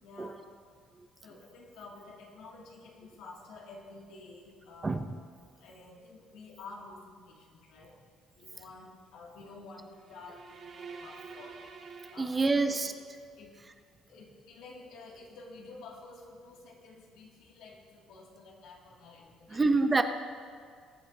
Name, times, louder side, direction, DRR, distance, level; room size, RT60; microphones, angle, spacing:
voice 1, 0.0-0.5 1.2-5.0 5.6-7.9 8.3-11.6 12.1-12.8 13.3-13.5 14.1-19.6, left 3 dB, 80° left, -2 dB, 2.2 m, -50 dB
sound 1, 10.0-13.0, right 5 dB, 40° right, 1.2 m, -48 dB
voice 2, 12.2-12.9 19.5-20.0, right 3 dB, 15° right, 8 dB, 0.6 m, -26 dB
21.0 x 8.7 x 2.7 m, 2.1 s
cardioid pair, 150°, 0 cm